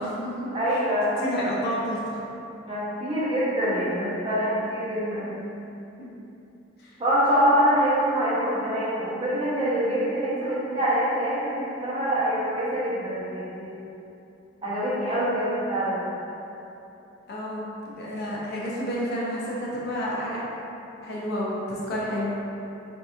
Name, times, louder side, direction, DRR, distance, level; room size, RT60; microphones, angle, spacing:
voice 1, 0.0-0.5 1.2-2.2 6.0-6.1 17.3-17.7 18.0-20.4 21.0-22.3, equal, 55° left, -5 dB, 0.5 m, -30 dB
voice 2, 0.5-1.2 2.7-5.5 7.0-13.8 14.6-16.1, equal, 30° right, -9 dB, 0.7 m, -25 dB
3.5 x 2.7 x 2.4 m, 2.9 s
head